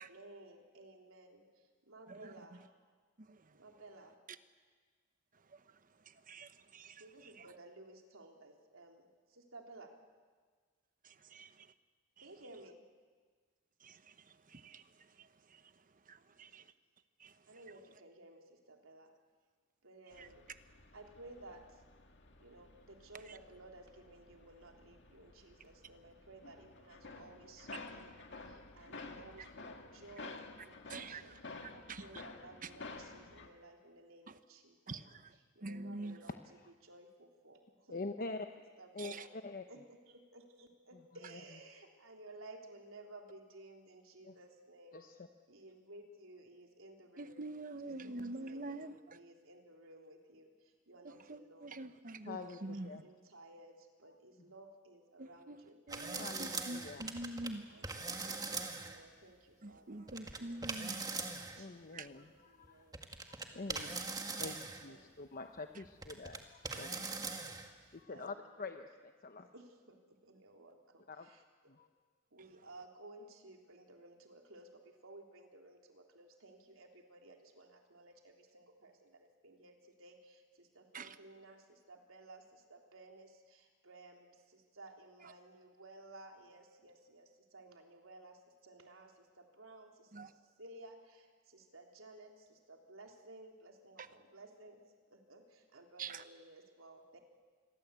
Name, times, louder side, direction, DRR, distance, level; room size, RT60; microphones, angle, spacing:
voice 1, 0.0-2.7 3.5-4.2 6.8-9.9 12.2-12.8 17.5-19.1 19.8-20.4 20.9-21.8 22.4-38.5 38.8-39.3 39.7-45.1 45.5-47.5 47.8-51.8 52.3-64.1 64.9-65.1 66.7-68.6 69.5-71.7 72.3-94.8 95.1-97.2, right 2 dB, 85° right, 2 dB, 3.6 m, -57 dB
voice 2, 3.2-3.5 5.5-5.6 6.1-7.5 13.8-15.7 16.1-16.7 17.2-17.3 20.2-20.3 30.9-31.4 31.6-32.2 32.6-32.7 34.3-34.4 34.9-35.3 35.6-36.2 39.0-39.2 47.2-49.2 51.0-53.0 55.2-55.6 55.9-58.1 59.6-61.0 61.9-62.1 80.9-81.1 90.1-90.3 94.0-94.1 96.0-96.2, right 2 dB, 40° right, 11 dB, 1.0 m, -46 dB
sound 1, 20.1-33.5, left 3 dB, 60° left, 2.1 m, -52 dB
voice 3, 37.9-38.5 38.9-39.1 39.4-39.6 44.2-44.3 44.9-45.1 52.3-53.0 56.2-57.0 61.6-62.3 62.7-62.9 63.4-64.0 64.4-66.9 67.9-69.5 71.1-71.3 71.7-71.9, left 3 dB, 45° left, 6 dB, 0.9 m, -45 dB
sound 2, 55.9-57.5 57.8-59.0 60.1-61.6 62.6-62.7 62.9-64.9 65.6-66.4 66.6-67.7, right 3 dB, 20° right, 2.0 m, -41 dB
27.5 x 22.0 x 8.3 m, 1.5 s
head